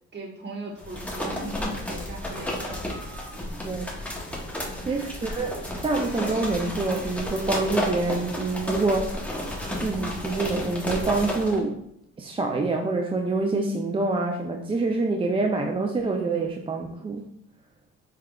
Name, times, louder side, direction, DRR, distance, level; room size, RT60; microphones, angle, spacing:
voice 1, 0.1-2.8 3.3-3.4 4.6-4.9, right 1 dB, 35° right, -1 dB, 1.2 m, -38 dB
sound 1, 0.8-11.6, left 1 dB, 5° left, 0.9 m, -32 dB
voice 2, 4.9-9.2 9.8-11.8 12.2-17.2, right 3 dB, 20° right, 2 dB, 0.3 m, -26 dB
4.7 x 3.4 x 2.3 m, 0.75 s
cardioid pair, 90°, 30 cm